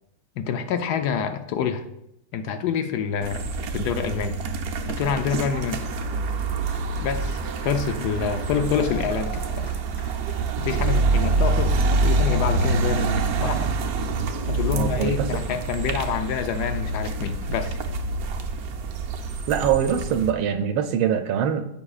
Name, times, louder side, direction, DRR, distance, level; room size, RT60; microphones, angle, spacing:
voice 1, 0.4-1.8 2.3-3.4 3.7-4.4 4.9-5.9 7.0-7.4 7.6-9.7 10.6-13.8 14.5-17.8, left 7 dB, 70° left, 8 dB, 1.0 m, -27 dB
sound 1, 3.2-20.3, right 3 dB, 70° right, 0.9 m, -26 dB
Cheering, 4.2-11.0, right 1 dB, 10° left, 1.6 m, -45 dB
voice 2, 14.7-15.4 19.5-21.7, right 8 dB, 85° right, 6 dB, 1.4 m, -23 dB
13.5 x 5.7 x 2.4 m, 0.82 s
omnidirectional pair, 2.2 m